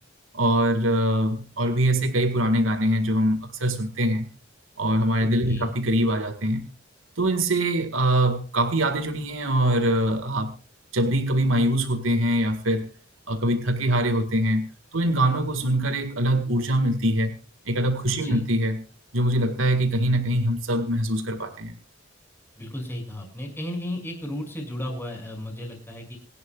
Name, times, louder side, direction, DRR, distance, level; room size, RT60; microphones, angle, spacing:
voice 1, 0.3-4.3 4.8-6.6 7.2-10.6 10.9-12.9 13.3-17.3 17.7-18.8 19.1-21.7, right 1 dB, 85° right, 1.9 m, -23 dB
voice 2, 5.2-5.7 18.1-18.4 22.6-26.2, left 1 dB, 10° left, 6.5 m, -34 dB
27.0 x 11.0 x 2.4 m
head